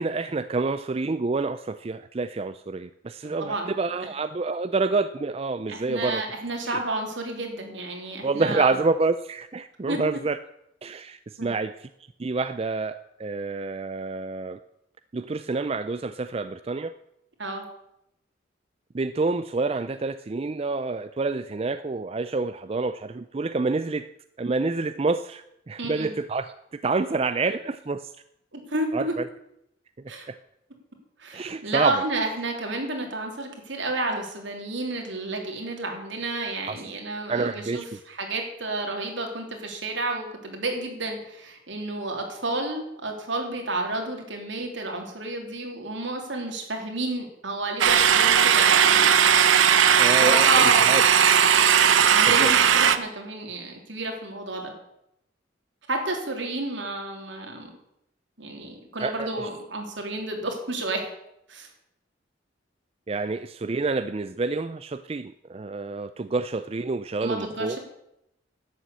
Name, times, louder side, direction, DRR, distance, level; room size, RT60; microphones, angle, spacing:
voice 1, 0.0-6.2 6.7-6.8 8.2-10.4 10.8-11.9 12.2-14.6 15.1-16.9 18.9-24.1 24.4-28.1 28.9-29.3 30.3-30.4 31.3-32.0 36.7-36.8 37.3-37.9 50.0-50.5 50.8-51.0 52.4-52.5 59.0-59.5 63.1-67.8, right 3 dB, 30° right, 11 dB, 0.4 m, -28 dB
voice 2, 3.2-3.7 5.7-8.7 9.9-10.2 11.4-11.5 17.4-17.6 25.8-26.1 28.5-29.1 30.1-30.3 31.2-49.1 50.2-51.0 52.1-54.7 55.9-57.7 58.4-61.0 61.5-61.7 67.2-67.8, right 2 dB, 75° right, 2 dB, 3.2 m, -31 dB
sound 1, 47.8-53.0, right 8 dB, 90° right, 0.8 m, -18 dB
11.5 x 9.0 x 8.3 m, 0.81 s
head